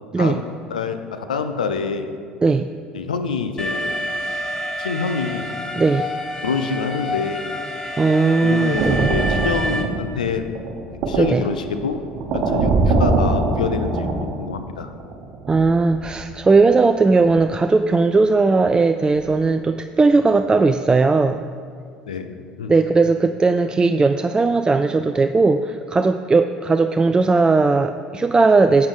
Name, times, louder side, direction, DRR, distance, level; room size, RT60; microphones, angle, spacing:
voice 1, 0.2-2.1 2.9-3.9 4.8-5.5 6.4-7.5 8.4-10.4 11.1-12.0 12.3-14.9 22.1-22.7, left 5 dB, 85° left, 8 dB, 0.6 m, -26 dB
Alarm, 3.6-9.8, equal, 15° left, 1.2 m, -28 dB
voice 2, 5.8-6.1 8.0-9.1 11.2-11.4 15.5-21.4 22.7-28.9, right 3 dB, 20° right, 8 dB, 0.3 m, -17 dB
sound 1, 8.7-14.6 15.0-16.4 17.2-17.5 17.9-18.1 18.6-18.8 19.2-19.3, right 3 dB, 55° right, 1.1 m, -23 dB
12.0 x 8.0 x 3.5 m, 2.2 s
hypercardioid pair, 65°, 4 cm